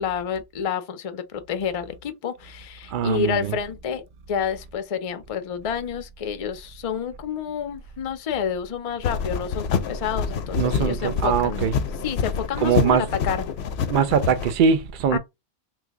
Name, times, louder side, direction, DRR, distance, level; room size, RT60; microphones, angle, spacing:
voice 1, 0.0-11.8 12.0-13.4 15.1-15.2, left 7 dB, 45° left, 0.5 m, -29 dB
voice 2, 2.9-3.6 10.5-11.8 12.6-13.1 13.9-15.2, right 7 dB, 60° right, 0.6 m, -22 dB
sound 1, 9.0-14.6, left 6 dB, 85° left, 0.8 m, -27 dB
3.2 x 2.3 x 3.5 m
omnidirectional pair, 1.1 m